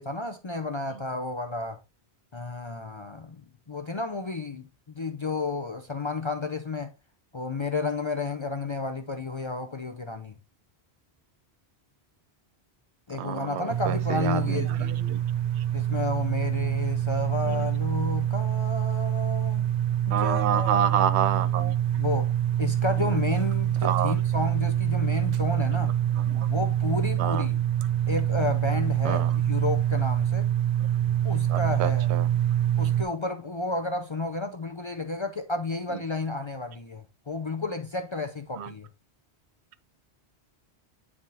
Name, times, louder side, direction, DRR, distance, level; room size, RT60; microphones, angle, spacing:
voice 1, 0.0-1.8 2.3-3.4 3.7-4.7 4.9-6.9 7.3-10.3 13.1-15.0 15.7-19.7 20.1-20.7 21.3-21.4 21.9-22.3 22.6-25.9 26.5-27.6 28.1-30.5 31.2-32.1 32.8-38.9, left 3 dB, 35° left, 0.5 m, -31 dB
voice 2, 13.2-15.2 17.4-17.7 20.1-21.7 23.8-24.2 26.2-26.5 27.2-27.4 29.0-29.4 31.5-32.3 38.6-38.7, right 9 dB, 80° right, 0.8 m, -28 dB
sound 1, 13.7-33.0, right 11 dB, 50° right, 0.6 m, -26 dB
9.6 x 3.6 x 2.7 m
omnidirectional pair, 1.1 m